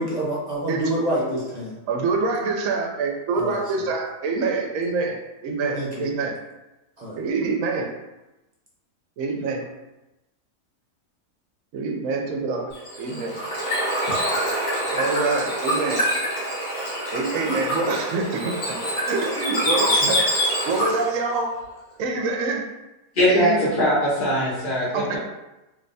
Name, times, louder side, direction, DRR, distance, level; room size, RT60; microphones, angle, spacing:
voice 1, 0.0-1.8 3.4-3.6 5.7-6.0 7.0-7.2, right 1 dB, 35° right, -6 dB, 0.7 m, -27 dB
voice 2, 1.9-5.2 5.4-6.4 7.1-7.9 9.2-9.7 11.7-12.7 13.0-13.4 14.9-16.0 17.1-18.8 19.1-21.6 22.0-22.6 23.2-23.6 24.9-25.2, right 4 dB, 65° right, 2 dB, 0.9 m, -26 dB
Bird / Water, 12.7-21.1, equal, 70° left, 1.9 m, -25 dB
voice 3, 23.2-25.2, left 1 dB, 40° left, -9 dB, 1.0 m, -21 dB
3.3 x 3.3 x 2.6 m, 0.99 s
omnidirectional pair, 1.7 m